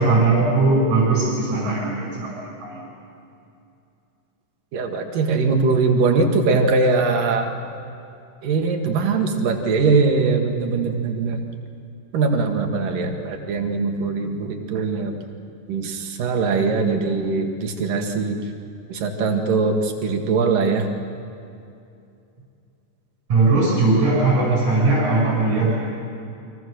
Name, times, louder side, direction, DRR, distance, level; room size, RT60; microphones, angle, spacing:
voice 1, 0.0-2.8 23.3-25.7, right 3 dB, 60° right, -4 dB, 7.0 m, -19 dB
voice 2, 4.7-7.5 8.4-11.4 12.1-15.2 15.7-18.4 18.9-20.9, right 4 dB, 85° right, 4 dB, 3.5 m, -21 dB
30.0 x 24.0 x 6.5 m, 2.6 s
omnidirectional pair, 3.7 m